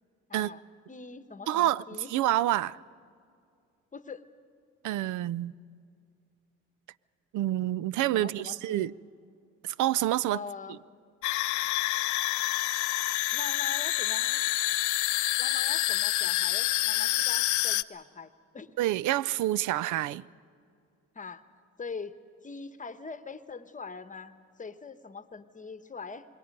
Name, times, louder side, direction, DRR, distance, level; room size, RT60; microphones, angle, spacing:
voice 1, 0.3-0.6 0.9-2.1 3.9-4.2 8.1-8.9 10.3-10.8 13.3-14.4 15.4-18.8 21.1-21.4 21.8-22.1 22.4-26.3, left 5 dB, 25° left, 1.0 m, -42 dB
voice 2, 1.5-1.8 2.1-2.8 4.8-5.5 7.3-8.9 9.6-10.4 18.8-20.2, right 14 dB, 80° right, 0.5 m, -27 dB
sound 1, 11.2-17.8, left 16 dB, 80° left, 0.5 m, -27 dB
26.5 x 21.5 x 5.3 m
cardioid pair, 90°, 30 cm